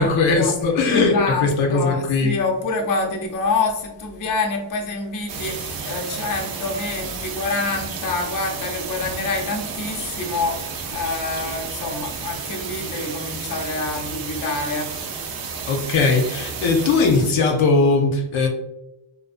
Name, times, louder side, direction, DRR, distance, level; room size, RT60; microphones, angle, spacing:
voice 1, 0.0-2.4 15.7-18.5, left 3 dB, 85° left, 2 dB, 0.7 m, -19 dB
voice 2, 0.9-14.9, left 3 dB, 45° left, 1 dB, 0.5 m, -26 dB
sound 1, 5.3-17.3, right 5 dB, 50° right, 0.5 m, -32 dB
2.5 x 2.2 x 2.4 m, 0.88 s
wide cardioid pair, 120°, 46 cm